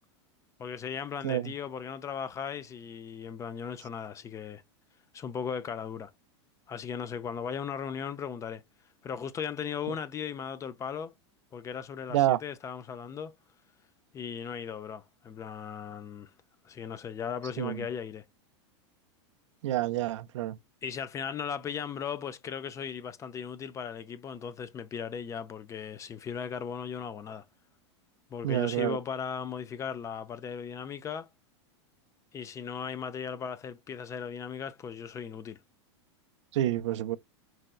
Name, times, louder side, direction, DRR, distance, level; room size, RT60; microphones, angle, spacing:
voice 1, 0.6-4.6 5.1-6.1 6.7-8.6 9.0-11.1 11.5-13.3 14.1-16.3 16.7-18.2 20.8-27.4 28.3-31.3 32.3-35.6, left 7 dB, 20° left, 0.3 m, -37 dB
voice 2, 12.1-12.4 17.6-17.9 19.6-20.6 28.4-29.0 36.5-37.2, right 13 dB, 80° right, 0.4 m, -28 dB
4.0 x 2.2 x 2.3 m
supercardioid pair, 125°, 15 cm